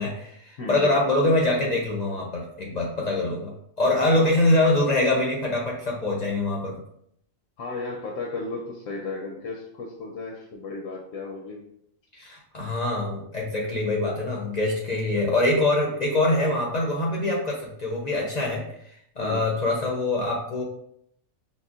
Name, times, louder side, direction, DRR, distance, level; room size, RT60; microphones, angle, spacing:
voice 1, 0.0-6.8 12.1-18.7 19.2-20.6, left 2 dB, 50° left, -2 dB, 0.5 m, -24 dB
voice 2, 0.6-1.0 4.2-4.4 7.6-11.6 19.2-19.5, left 3 dB, 75° left, 0 dB, 0.9 m, -34 dB
5.5 x 2.0 x 2.4 m, 0.70 s
omnidirectional pair, 1.4 m